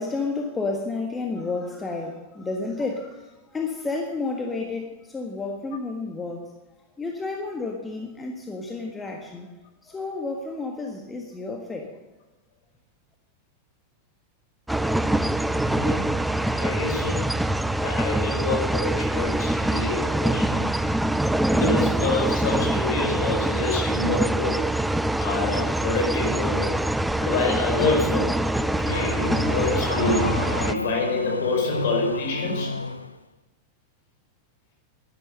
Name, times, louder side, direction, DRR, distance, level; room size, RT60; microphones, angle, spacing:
voice 1, 0.0-6.5 7.0-9.5 9.8-11.9, left 3 dB, 15° left, 1 dB, 1.6 m, -31 dB
sound 1, 14.7-30.7, right 1 dB, 5° right, 0.5 m, -24 dB
voice 2, 15.6-16.1 16.5-17.2 17.8-20.6 21.5-24.6 25.2-26.8 27.2-28.3 28.8-30.3 30.6-32.7, left 3 dB, 50° left, 1 dB, 4.8 m, -27 dB
Car / Accelerating revving vroom, 28.3-33.2, left 3 dB, 80° left, 0.5 m, -30 dB
12.0 x 11.5 x 6.7 m, 1.1 s
figure-of-eight pair, 90°, 0 cm